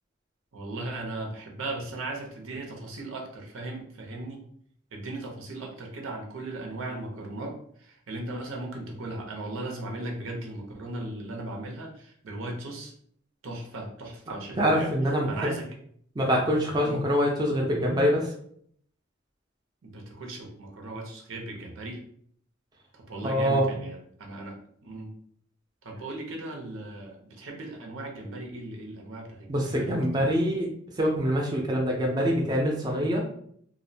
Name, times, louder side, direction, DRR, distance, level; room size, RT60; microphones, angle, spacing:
voice 1, 0.5-4.4 4.9-12.9 13.4-14.9 15.3-15.7 16.8-17.1 19.8-22.0 22.9-24.5 24.8-25.1 25.8-30.0 30.3-30.4, right 2 dB, 80° right, 1 dB, 0.6 m, -37 dB
voice 2, 14.3-15.3 16.2-18.3 23.2-23.6 29.5-30.7 31.0-33.2, equal, 20° right, -1 dB, 0.4 m, -25 dB
2.5 x 2.0 x 2.6 m, 0.64 s
head